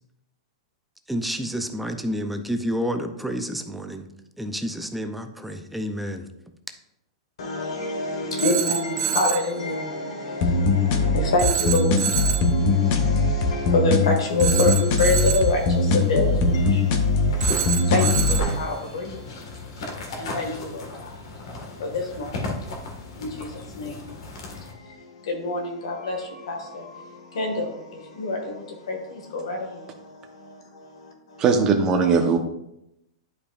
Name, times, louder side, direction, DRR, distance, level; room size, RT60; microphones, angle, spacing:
voice 1, 1.1-4.1 4.4-6.3, equal, ahead, 0.4 m, -29 dB
voice 2, 7.4-31.4, left 2 dB, 85° left, 1.6 m, -28 dB
Telephone, 8.4-9.5 11.4-12.6 14.4-15.6 17.4-18.6, right 9 dB, 60° right, 0.9 m, -27 dB
sound 1, 10.4-18.4, left 3 dB, 35° left, 0.7 m, -21 dB
sound 2, 14.0-24.7, left 2 dB, 65° left, 1.6 m, -37 dB
voice 3, 31.4-32.4, right 5 dB, 20° right, 0.8 m, -19 dB
11.0 x 5.1 x 2.4 m
supercardioid pair, 165°, 3 cm